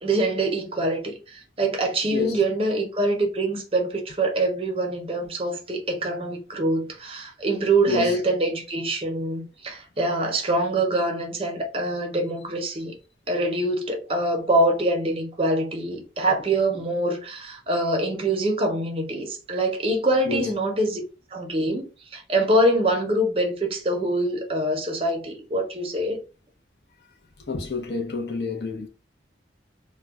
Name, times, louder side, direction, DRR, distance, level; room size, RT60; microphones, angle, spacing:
voice 1, 0.0-12.9 13.3-21.0 21.3-26.2, right 1 dB, 30° right, 0.6 m, -24 dB
voice 2, 7.9-8.2 20.3-20.5 27.5-28.9, left 4 dB, 65° left, 0.6 m, -28 dB
2.2 x 2.1 x 3.5 m
head